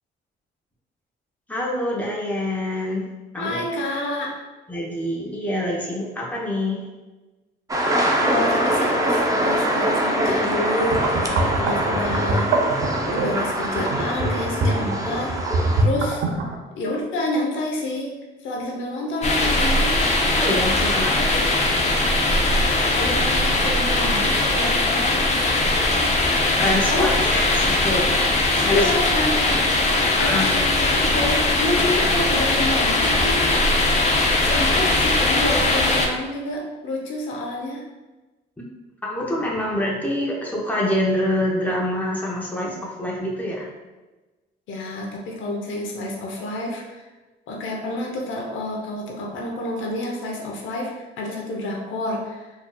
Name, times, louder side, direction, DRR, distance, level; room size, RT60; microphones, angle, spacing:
voice 1, 1.5-3.0 3.3-3.6 4.7-6.8 20.4-21.4 26.6-28.1 28.6-28.9 30.2-30.6 39.1-43.7, left 1 dB, 10° left, -4 dB, 0.9 m, -25 dB
voice 2, 3.4-4.3 8.2-16.2 16.8-18.1 18.4-19.9 22.9-25.5 26.9-27.3 28.7-29.6 30.1-34.1 34.4-37.8 44.7-47.0 47.5-52.5, left 1 dB, 80° left, -1 dB, 0.7 m, -28 dB
sound 1, 7.7-15.8, right 1 dB, 15° right, 0.5 m, -23 dB
sound 2, 10.8-16.6, right 2 dB, 75° right, 0.5 m, -24 dB
sound 3, 19.2-36.1, left 2 dB, 35° left, 0.6 m, -20 dB
4.2 x 2.9 x 2.2 m, 1.2 s
cardioid pair, 90°, 20 cm